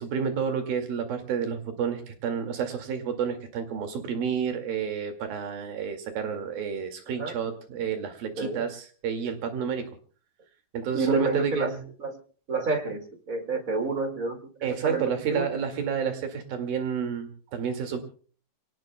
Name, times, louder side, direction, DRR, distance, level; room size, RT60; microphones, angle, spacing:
voice 1, 0.0-9.8 10.7-11.8 14.6-18.0, right 7 dB, 75° right, 7 dB, 3.9 m, -30 dB
voice 2, 8.4-8.7 10.9-11.7 12.0-12.2 12.5-15.5, right 3 dB, 30° right, 6 dB, 1.8 m, -29 dB
28.0 x 18.5 x 2.2 m, 0.43 s
omnidirectional pair, 4.3 m